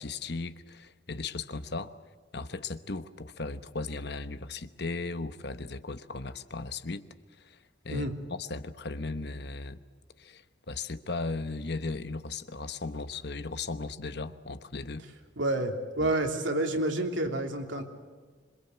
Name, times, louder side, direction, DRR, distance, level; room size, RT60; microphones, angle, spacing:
voice 1, 0.0-2.0 2.3-7.1 7.4-7.6 7.8-9.8 10.2-15.0 16.0-16.1, left 3 dB, 60° left, 11 dB, 1.1 m, -37 dB
voice 2, 15.4-17.8, right 1 dB, 80° right, 3 dB, 3.1 m, -29 dB
26.5 x 22.0 x 8.1 m, 1.4 s
head